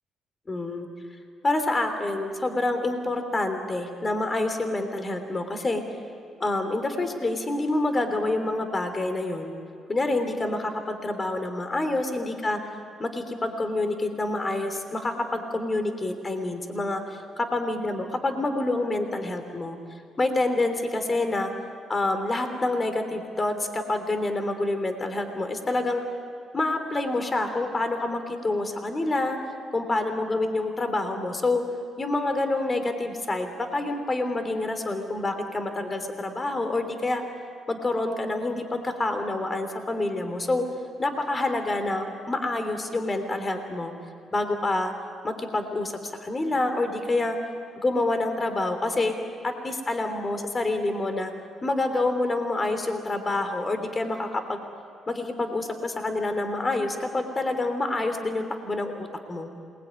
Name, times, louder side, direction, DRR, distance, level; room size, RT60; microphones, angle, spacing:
voice 1, 0.5-0.9 1.4-5.8 6.4-9.6 9.9-12.6 13.0-19.8 20.2-21.5 21.9-26.0 26.5-29.4 29.7-31.6 32.0-37.2 37.7-40.7 41.0-43.9 44.3-44.9 45.2-47.4 47.7-49.1 49.4-51.3 51.6-54.6 55.1-59.5, left 2 dB, 30° left, 7 dB, 3.3 m, -27 dB
27.5 x 21.0 x 9.6 m, 2.5 s
cardioid pair, 90°, 0 cm